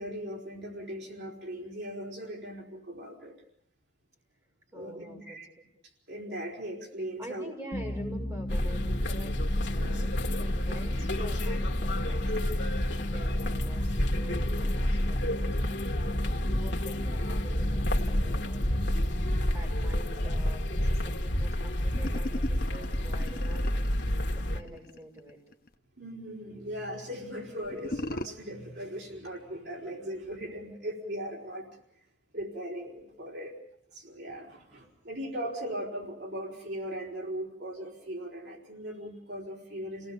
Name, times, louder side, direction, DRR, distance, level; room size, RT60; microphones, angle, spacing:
voice 1, 0.0-3.3 4.7-5.5 6.1-7.5 9.7-10.1 26.0-31.7 32.3-33.6 33.9-40.1, equal, 70° right, 0 dB, 4.5 m, -39 dB
voice 2, 4.7-5.4 7.2-12.2 12.6-18.8 19.0-23.6 24.3-25.4 34.8-34.9, right 1 dB, 15° right, -1 dB, 5.9 m, -47 dB
sound 1, 7.7-21.0, equal, 35° left, 2.1 m, -36 dB
sound 2, 8.5-24.6, left 1 dB, 75° left, 1.8 m, -29 dB
sound 3, 21.9-25.7 27.6-28.3, left 1 dB, 50° left, 0.9 m, -38 dB
29.5 x 19.0 x 7.1 m, 0.67 s
head